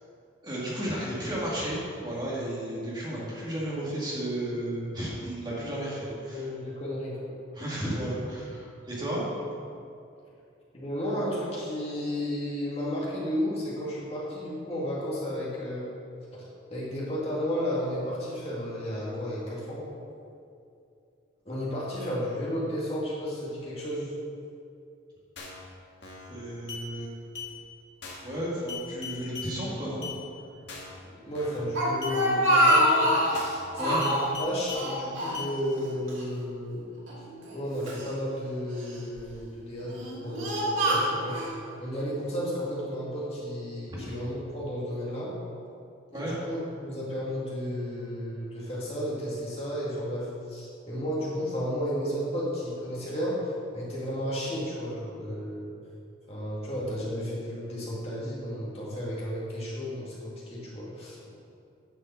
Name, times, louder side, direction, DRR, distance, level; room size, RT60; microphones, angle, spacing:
voice 1, 0.4-6.4 7.5-9.2 26.3-27.1 28.2-30.0 33.8-34.0 43.9-44.1 46.1-46.3, right 1 dB, 20° right, -7 dB, 2.2 m, -33 dB
voice 2, 6.0-7.3 10.7-15.9 16.3-16.4 16.7-19.8 21.5-24.1 31.1-36.9 37.5-45.3 46.1-55.7 56.3-61.3, equal, 30° left, -7 dB, 2.2 m, -33 dB
sound 1, 25.4-25.7 26.0-26.3 26.7-26.8 27.3-27.5 28.0-28.3 28.7-29.5 30.0-30.2 30.7-31.0 31.3-31.7 32.0-32.2 32.7-32.8 33.3-33.7 34.0-34.8 35.3-35.5, left 5 dB, 60° left, 1.7 m, -39 dB
Speech, 31.5-33.4 33.8-34.3 34.7-35.8 36.1-36.2 37.1-38.1 38.8-39.2 39.8-41.5, equal, 85° right, 2.3 m, -25 dB
10.0 x 5.5 x 7.0 m, 2.5 s
head